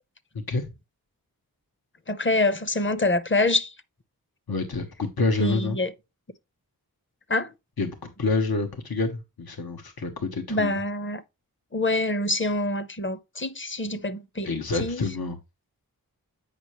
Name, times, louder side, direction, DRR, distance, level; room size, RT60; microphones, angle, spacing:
voice 1, 2.1-3.7 5.4-5.9 7.3-7.5 10.5-11.2 11.7-15.0, left 2 dB, 35° left, 0.8 m, -26 dB
voice 2, 4.5-5.8 7.8-10.8 14.4-15.4, left 3 dB, 80° left, 1.1 m, -28 dB
8.3 x 5.5 x 3.0 m
wide cardioid pair, 70°, 36 cm